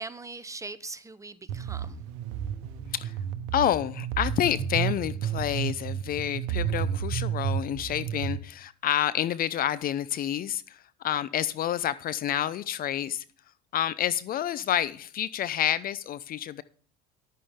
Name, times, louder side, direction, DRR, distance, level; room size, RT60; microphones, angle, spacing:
voice 1, 0.0-2.0, right 3 dB, 15° right, 0.7 m, -40 dB
sound 1, 1.5-8.3, right 9 dB, 75° right, 1.1 m, -31 dB
voice 2, 3.5-13.2 13.7-16.6, left 11 dB, 45° left, 0.6 m, -29 dB
11.0 x 8.5 x 3.6 m
supercardioid pair, 85°, 21 cm